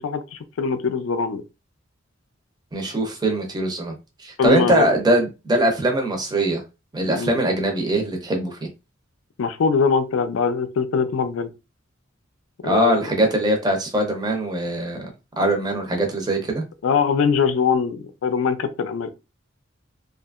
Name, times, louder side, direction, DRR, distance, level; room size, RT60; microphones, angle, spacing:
voice 1, 0.0-1.4 4.4-4.8 7.2-7.4 9.4-11.5 12.6-13.1 16.8-19.1, left 5 dB, 80° left, 0.4 m, -22 dB
voice 2, 2.7-4.0 4.2-6.6 6.9-8.7 12.6-15.1 15.4-16.6, right 1 dB, 20° right, 0.6 m, -22 dB
2.7 x 2.4 x 2.3 m
head